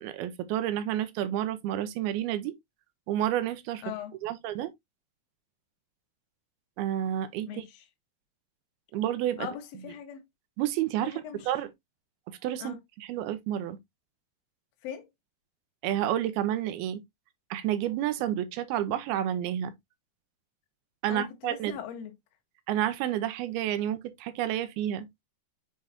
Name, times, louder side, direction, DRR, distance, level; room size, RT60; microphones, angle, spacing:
voice 1, 0.0-2.5 3.1-3.8 4.2-4.7 6.8-7.6 8.9-9.5 10.6-11.7 12.3-13.8 15.8-17.0 17.5-19.7 21.0-21.8 22.7-25.1, right 11 dB, 85° right, 2.6 m, -30 dB
voice 2, 3.8-4.1 7.4-7.8 9.4-10.2 11.0-11.5 12.6-12.8 14.8-15.1 21.1-22.1, left 9 dB, 60° left, 1.8 m, -40 dB
7.6 x 4.8 x 2.7 m
omnidirectional pair, 4.5 m